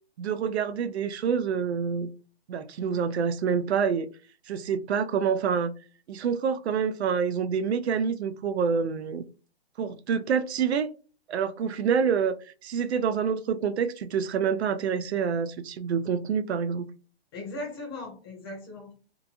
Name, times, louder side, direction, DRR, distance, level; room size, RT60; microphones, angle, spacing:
voice 1, 0.2-2.1 2.5-4.1 4.5-5.7 6.1-9.2 9.8-10.9 11.3-12.4 12.6-16.9, right 6 dB, 80° right, 0.5 m, -27 dB
voice 2, 17.3-18.9, left 2 dB, 20° left, 0.8 m, -38 dB
2.8 x 2.3 x 2.5 m
hypercardioid pair, 165°, 32 cm